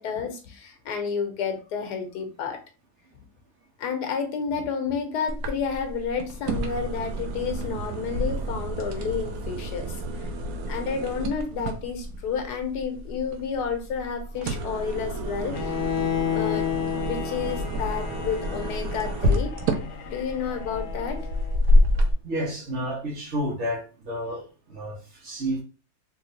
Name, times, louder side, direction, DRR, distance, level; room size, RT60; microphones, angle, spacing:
voice 1, 0.0-2.6 3.1-3.2 3.8-10.3 10.7-15.8 16.3-16.7 17.0-19.5 20.1-21.3, left 6 dB, 90° left, 6 dB, 1.3 m, -30 dB
sound 1, 5.3-22.1, equal, 70° right, 1.1 m, -28 dB
Bowed string instrument, 15.5-21.6, left 9 dB, 70° left, 0.7 m, -32 dB
voice 2, 22.2-25.6, equal, 45° right, -2 dB, 1.5 m, -31 dB
3.5 x 3.1 x 2.6 m, 0.35 s
omnidirectional pair, 1.7 m